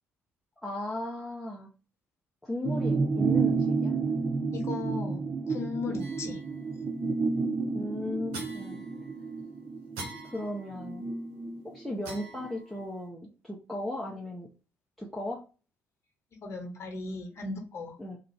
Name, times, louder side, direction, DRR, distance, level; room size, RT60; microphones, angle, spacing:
voice 1, 0.6-1.7 2.4-4.0 5.9-6.1 7.7-8.8 10.3-11.1 11.6-14.5 15.0-15.4 18.0-18.2, left 1 dB, ahead, -3 dB, 0.6 m, -36 dB
sound 1, 2.6-12.5 12.8-12.9, right 4 dB, 35° right, 0.5 m, -30 dB
voice 2, 4.5-6.4 16.4-18.0, left 3 dB, 45° left, 2 dB, 1.0 m, -36 dB
sound 2, 6.0-6.7 8.3-9.4 9.9-11.1 12.0-13.0, right 2 dB, 75° right, 0.7 m, -45 dB
2.5 x 2.3 x 3.2 m, 0.34 s
hypercardioid pair, 50°, 6 cm